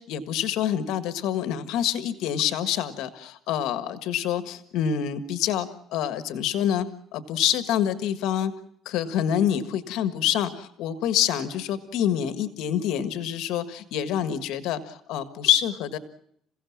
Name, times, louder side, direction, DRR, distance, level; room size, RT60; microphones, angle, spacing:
voice 1, 0.0-6.9 7.1-8.5 8.8-16.0, left 10 dB, 80° left, 11 dB, 1.6 m, -26 dB
28.5 x 16.5 x 7.3 m, 0.71 s
cardioid pair, 125°, 0 cm